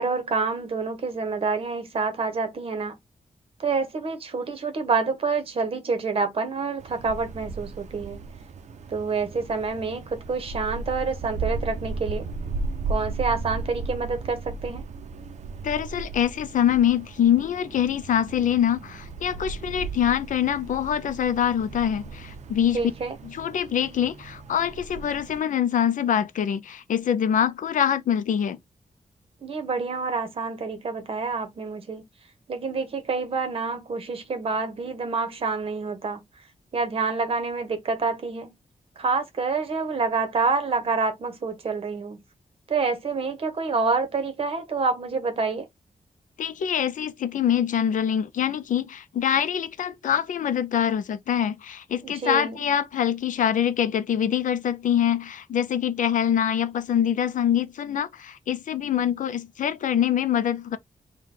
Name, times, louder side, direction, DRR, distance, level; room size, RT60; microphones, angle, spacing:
voice 1, 0.0-2.9 3.6-8.2 8.9-12.2 12.9-14.9 22.7-23.2 29.4-32.0 32.5-36.2 36.7-38.6 39.0-42.2 42.7-45.7 52.0-52.6, right 4 dB, 45° right, 1.1 m, -27 dB
Wind, 6.8-25.4, right 3 dB, 60° right, 0.5 m, -36 dB
voice 2, 15.6-22.9 23.2-28.6 46.4-60.8, left 9 dB, 80° left, 0.5 m, -24 dB
3.7 x 2.3 x 4.4 m
wide cardioid pair, 180°, 13 cm